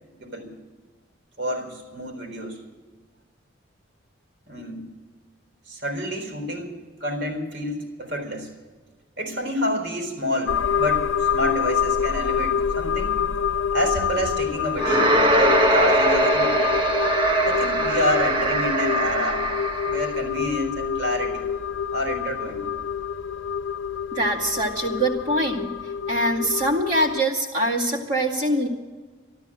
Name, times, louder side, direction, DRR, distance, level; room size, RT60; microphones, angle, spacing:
voice 1, 0.1-0.5 1.4-2.6 4.5-4.9 5.7-8.5 9.2-13.2 13.7-16.6 17.4-19.5 19.8-21.5 21.9-22.7, left 1 dB, 65° right, 3 dB, 4.1 m, -28 dB
sound 1, 10.5-27.2, left 7 dB, 85° left, 0.6 m, -27 dB
sound 2, 14.8-20.1, right 1 dB, 25° right, 1.3 m, -21 dB
voice 2, 24.1-25.7 26.1-28.7, right 1 dB, 40° right, -3 dB, 2.3 m, -23 dB
13.0 x 13.0 x 7.6 m, 1.4 s
head